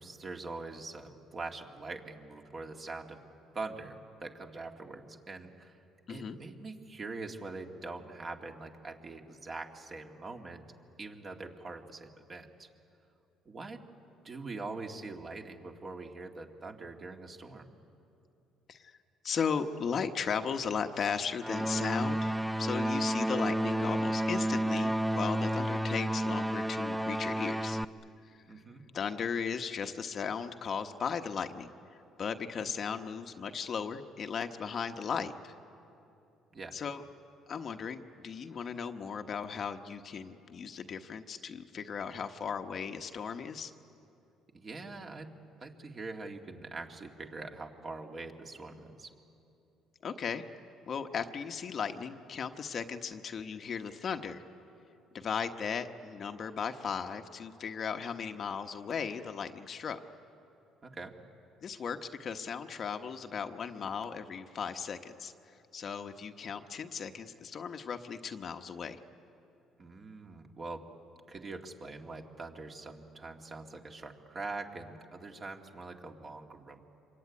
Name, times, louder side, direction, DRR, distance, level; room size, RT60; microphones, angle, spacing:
voice 1, 0.0-3.2 3.5-5.8 6.1-10.6 11.0-12.7 13.5-13.8 14.2-17.7 28.5-28.8 36.5-36.8 44.5-45.3 45.6-49.1 60.8-61.1 69.8-70.9 71.3-76.8, right 3 dB, 35° right, 3 dB, 2.3 m, -43 dB
voice 2, 19.2-22.3 22.6-27.8 28.3-28.6 28.9-31.7 32.2-35.5 36.7-37.0 37.5-43.7 50.0-50.4 50.9-54.4 55.1-60.0 61.6-69.0, left 6 dB, 45° left, 6 dB, 1.1 m, -36 dB
sound 1, 21.4-27.8, right 1 dB, 5° right, 0.6 m, -31 dB
26.0 x 22.5 x 9.7 m, 2.7 s
cardioid pair, 110°, 0 cm